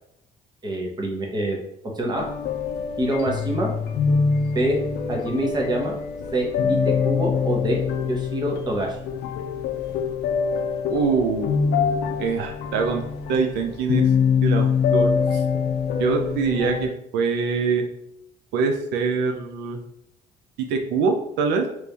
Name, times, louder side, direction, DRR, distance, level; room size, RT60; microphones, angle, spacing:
voice 1, 0.6-1.6 1.9-2.3 3.0-3.7 4.5-4.8 5.1-6.0 6.3-7.8 8.1-8.9, right 1 dB, 25° right, 0 dB, 0.9 m, -25 dB
sound 1, 2.2-16.9, left 6 dB, 75° left, 0.4 m, -24 dB
voice 2, 10.9-11.5 12.2-13.0 13.3-14.1 14.4-15.4 16.0-17.9 18.5-19.8 20.7-21.7, right 5 dB, 90° right, 3 dB, 0.5 m, -24 dB
3.1 x 2.6 x 3.3 m, 0.77 s
cardioid pair, 110°, 17 cm